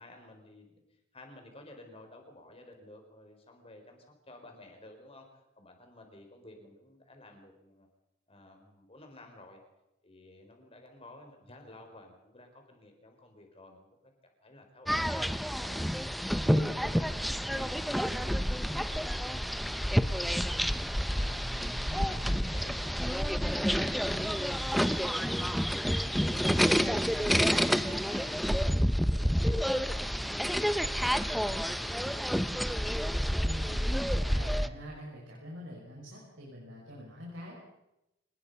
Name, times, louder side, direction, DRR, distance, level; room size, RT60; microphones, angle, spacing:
voice 1, 0.0-7.9 8.3-9.6 10.0-14.1 14.4-15.9 16.5-20.6 21.1-21.5 22.0-23.5 23.8-30.1 30.3-32.9, left 1 dB, 30° left, 4 dB, 4.7 m, -54 dB
sound 1, 14.9-34.7, equal, ahead, 0.7 m, -29 dB
voice 2, 16.4-16.7 21.2-22.1 33.4-37.6, equal, 75° right, -3 dB, 6.1 m, -45 dB
25.0 x 20.0 x 5.6 m, 0.90 s
head